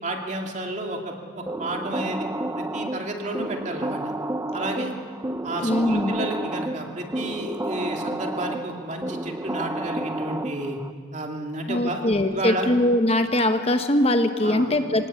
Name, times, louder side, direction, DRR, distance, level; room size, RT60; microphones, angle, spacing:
voice 1, 0.0-2.3 2.6-4.1 4.5-4.9 5.4-10.8 11.1-12.0 12.3-12.7 14.4-14.7, right 1 dB, 35° right, 2 dB, 2.5 m, -31 dB
sound 1, 1.5-10.9, right 1 dB, 15° right, 0.6 m, -31 dB
voice 2, 5.6-6.2 11.7-15.1, left 1 dB, 30° left, 7 dB, 0.9 m, -22 dB
24.5 x 18.5 x 8.2 m, 2.1 s
head